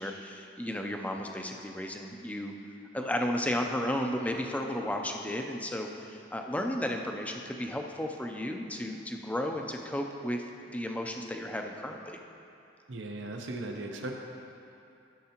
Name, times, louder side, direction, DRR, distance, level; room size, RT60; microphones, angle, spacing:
voice 1, 0.0-2.5 2.9-12.2, left 1 dB, 10° left, 3 dB, 0.4 m, -33 dB
voice 2, 12.9-14.1, right 2 dB, 85° right, 2 dB, 0.7 m, -37 dB
13.0 x 6.7 x 2.9 m, 2.7 s
head